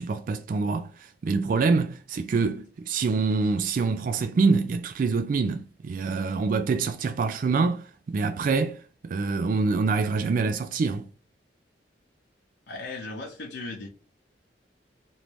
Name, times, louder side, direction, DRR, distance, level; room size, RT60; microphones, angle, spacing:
voice 1, 0.0-11.1, right 4 dB, 50° right, 0.3 m, -26 dB
voice 2, 12.7-13.9, left 2 dB, 70° left, 0.7 m, -37 dB
3.1 x 2.5 x 3.3 m
head